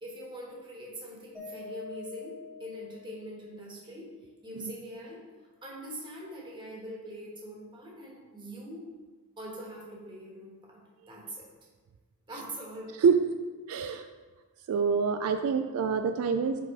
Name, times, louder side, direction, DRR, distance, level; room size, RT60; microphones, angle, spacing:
voice 1, 0.0-4.1 4.4-5.2 5.6-8.9 9.4-11.5 12.3-12.9, equal, 20° right, -3 dB, 1.3 m, -43 dB
Mallet percussion, 1.3-3.6, left 4 dB, 5° left, 0.9 m, -45 dB
voice 2, 13.7-14.0 14.7-16.6, right 6 dB, 75° right, 7 dB, 0.3 m, -26 dB
5.4 x 4.1 x 4.8 m, 1.4 s
head